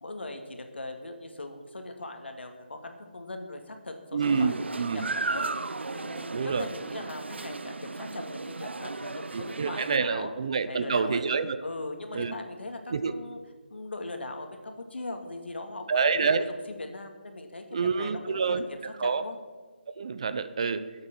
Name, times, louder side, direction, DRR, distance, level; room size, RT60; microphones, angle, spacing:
voice 1, 0.0-5.5 5.9-10.3 10.7-11.2 11.6-13.4 13.7-19.4, left 2 dB, 75° left, 5 dB, 2.2 m, -40 dB
voice 2, 4.1-5.1 6.3-6.7 9.3-11.6 12.1-12.3 12.9-13.1 15.9-16.5 17.7-18.6 19.0-19.2 20.0-20.9, right 5 dB, 35° right, 12 dB, 0.6 m, -27 dB
sound 1, 4.2-10.0, right 3 dB, 85° right, 0.7 m, -35 dB
17.0 x 8.1 x 6.1 m, 1.4 s
figure-of-eight pair, 170°, 6 cm